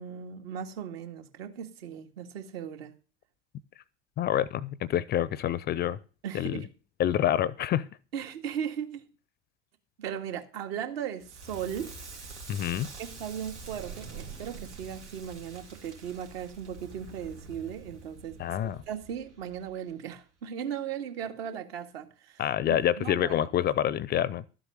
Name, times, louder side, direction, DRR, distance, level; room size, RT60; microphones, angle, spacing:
voice 1, 0.0-2.9 6.2-6.7 8.1-9.1 10.0-11.9 13.0-18.4 18.9-22.4 22.7-23.4, right 8 dB, 60° right, 2.1 m, -37 dB
voice 2, 4.2-6.0 6.3-6.6 7.0-7.9 12.5-12.9 18.4-18.8 22.4-24.4, left 11 dB, 30° left, 0.6 m, -27 dB
Crackle, 11.2-20.2, right 4 dB, 85° right, 2.8 m, -46 dB
13.0 x 7.9 x 6.4 m
figure-of-eight pair, 70°, 34 cm